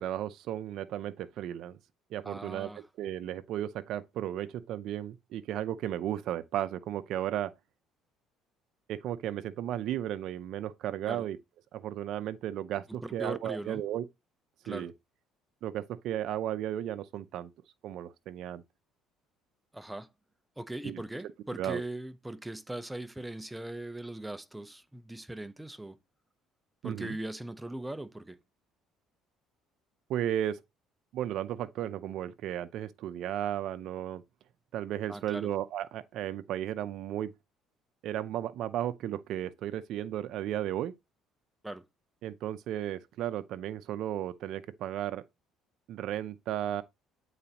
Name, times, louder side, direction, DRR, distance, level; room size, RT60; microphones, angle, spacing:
voice 1, 0.0-1.8 2.1-2.7 3.0-7.5 8.9-11.4 11.7-14.0 14.7-14.9 15.6-17.5 17.8-18.6 20.8-21.0 21.6-21.8 26.8-27.2 30.1-30.6 31.1-34.2 34.7-37.3 38.0-40.9 42.2-45.2 45.9-46.8, right 11 dB, 65° right, 0.6 m, -34 dB
voice 2, 2.2-2.8 11.1-11.2 13.0-13.8 14.6-14.9 19.7-20.1 20.6-26.0 26.8-28.4 35.1-35.5 41.6-41.9, right 1 dB, 5° right, 0.6 m, -40 dB
8.4 x 4.0 x 2.9 m
cardioid pair, 110°, 0 cm